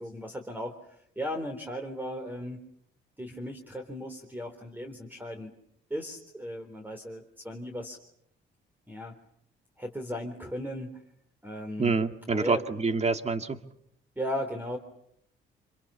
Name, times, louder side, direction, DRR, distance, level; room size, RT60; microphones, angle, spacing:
voice 1, 0.0-2.6 3.2-5.5 5.9-8.0 8.9-9.2 9.8-11.0 11.4-12.0 12.3-12.6 14.2-14.8, equal, 10° right, 6 dB, 4.0 m, -36 dB
voice 2, 11.8-13.6, right 4 dB, 35° right, 8 dB, 2.2 m, -27 dB
28.5 x 27.5 x 7.0 m, 0.74 s
cardioid pair, 90°, 20 cm